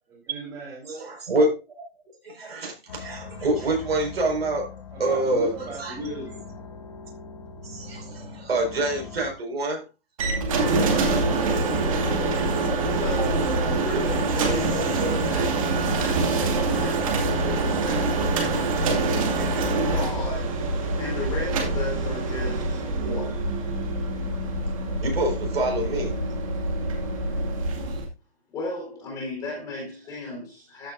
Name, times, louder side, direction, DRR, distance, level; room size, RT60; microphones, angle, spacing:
voice 1, 0.1-1.1 4.9-6.5 11.2-14.3, right 2 dB, 10° right, 3.9 m, -37 dB
voice 2, 0.9-1.8 2.2-5.5 5.8-6.0 7.6-9.8 25.0-26.2 27.8-28.0, right 2 dB, 80° right, 5.1 m, -26 dB
sound 1, 2.9-9.3, left 5 dB, 35° left, 1.5 m, -42 dB
sound 2, 10.2-28.1, right 3 dB, 35° right, 2.3 m, -25 dB
voice 3, 13.0-20.5 21.0-23.4 28.5-30.9, left 2 dB, 10° left, 4.0 m, -35 dB
14.0 x 6.5 x 2.6 m
hypercardioid pair, 175°, 30 cm